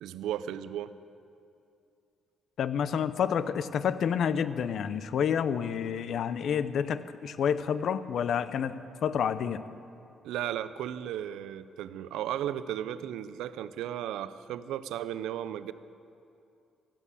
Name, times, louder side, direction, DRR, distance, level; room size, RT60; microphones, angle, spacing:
voice 1, 0.0-0.9 10.2-15.7, right 11 dB, 90° right, 14 dB, 0.5 m, -35 dB
voice 2, 2.6-8.8 9.0-9.6, left 8 dB, 65° left, 14 dB, 0.6 m, -29 dB
14.5 x 8.2 x 8.3 m, 2.6 s
cardioid pair, 90°, 0 cm